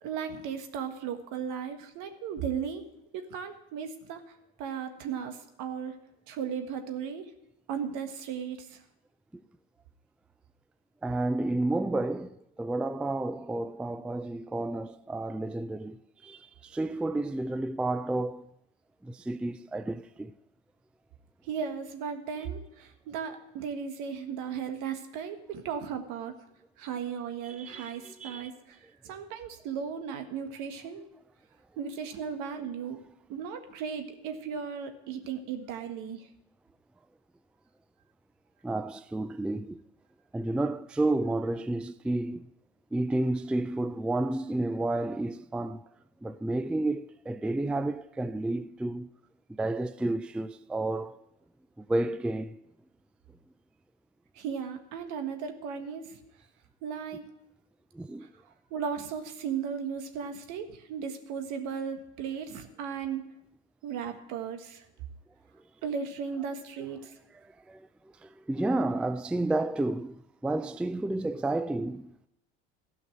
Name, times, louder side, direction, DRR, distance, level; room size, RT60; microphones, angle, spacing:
voice 1, 0.0-2.8 3.1-4.2 4.6-6.0 6.3-7.3 7.7-8.8 21.5-26.3 26.8-28.8 29.0-31.1 31.8-33.0 33.3-36.3 54.3-56.2 56.8-57.3 58.7-63.2 63.8-64.8 65.8-67.1, right 7 dB, 70° right, 1.6 m, -36 dB
voice 2, 11.0-18.5 19.0-20.3 27.4-28.5 38.6-39.8 40.3-42.5 42.9-45.9 46.2-49.1 49.5-51.2 51.8-52.6 57.9-58.3 67.7-67.9 68.2-72.3, right 2 dB, 5° right, 0.3 m, -31 dB
13.5 x 5.8 x 8.9 m
supercardioid pair, 80°, 32 cm